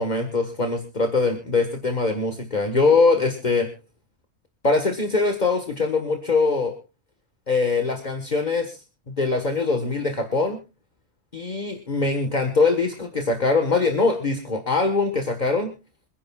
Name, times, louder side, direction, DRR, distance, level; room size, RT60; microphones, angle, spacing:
voice 1, 0.0-3.7 4.6-6.8 7.5-8.8 9.1-10.6 11.3-15.7, left 3 dB, 45° left, 6 dB, 1.6 m, -22 dB
27.5 x 10.0 x 2.4 m, 0.31 s
omnidirectional pair, 1.1 m